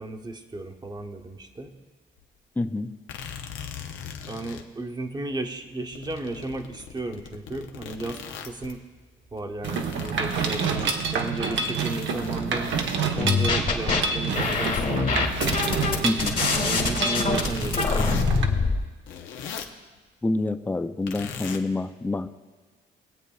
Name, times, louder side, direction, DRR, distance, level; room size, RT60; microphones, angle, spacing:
voice 1, 0.0-1.7 4.3-8.8 9.3-12.7 13.1-15.2 16.5-18.3, right 2 dB, 20° right, 4 dB, 1.0 m, -34 dB
sound 1, 2.2-2.3 3.1-4.6 5.5-5.6 5.9-8.8 9.3-13.1 13.5-16.4 17.3-18.3 18.8-19.8 21.0-21.6, left 8 dB, 80° left, 0.8 m, -40 dB
voice 2, 2.6-2.9 16.0-16.4 20.2-22.3, left 2 dB, 10° left, 9 dB, 0.4 m, -27 dB
Mechanisms, 9.6-18.5, right 5 dB, 70° right, 1.0 m, -28 dB
sound 2, 13.2-14.0 14.3-18.8, left 4 dB, 45° left, 1.6 m, -24 dB
22.5 x 8.0 x 2.4 m, 1.3 s
cardioid pair, 90°, 20 cm